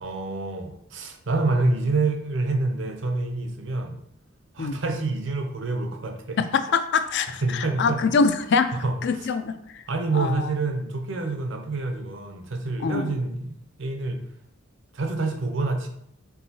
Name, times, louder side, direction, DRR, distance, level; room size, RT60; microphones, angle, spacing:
voice 1, 0.0-4.0 4.5-6.4 7.4-8.0 8.7-9.3 9.9-14.2 14.9-15.9, right 3 dB, 60° right, 5 dB, 0.6 m, -27 dB
voice 2, 6.4-8.7 9.0-9.8 10.1-10.5 12.8-13.2, left 5 dB, 55° left, 10 dB, 0.4 m, -24 dB
4.6 x 3.7 x 2.7 m, 0.74 s
head